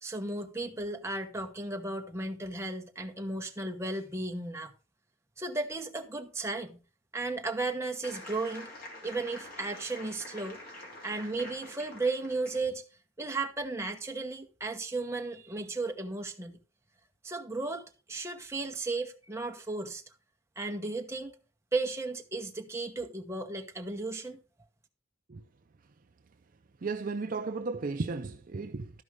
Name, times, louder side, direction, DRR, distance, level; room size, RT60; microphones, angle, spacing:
voice 1, 0.0-4.7 5.4-6.8 7.1-8.7 9.0-10.6 11.0-12.8 13.2-16.6 17.2-17.8 18.1-20.0 20.6-21.3 21.7-24.4, right 3 dB, 15° right, 1.0 m, -35 dB
sound 1, 8.0-12.7, left 1 dB, 45° left, 2.9 m, -46 dB
voice 2, 26.8-29.0, right 4 dB, 40° right, 0.5 m, -34 dB
12.5 x 5.3 x 4.8 m
head